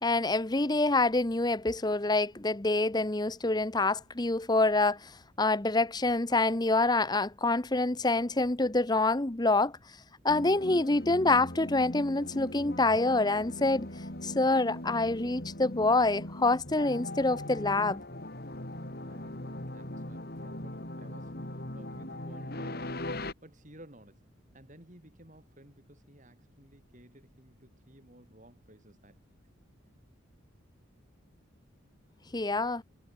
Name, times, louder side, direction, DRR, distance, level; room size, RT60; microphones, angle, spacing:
voice 1, 0.0-9.7 10.2-13.9 14.2-18.0 32.3-32.8, left 2 dB, 20° left, 0.9 m, -26 dB
sound 1, 10.3-23.3, left 1 dB, 50° left, 3.2 m, -40 dB
voice 2, 18.8-23.0 23.4-24.3 24.5-29.2, right 1 dB, 40° right, 6.1 m, -56 dB
head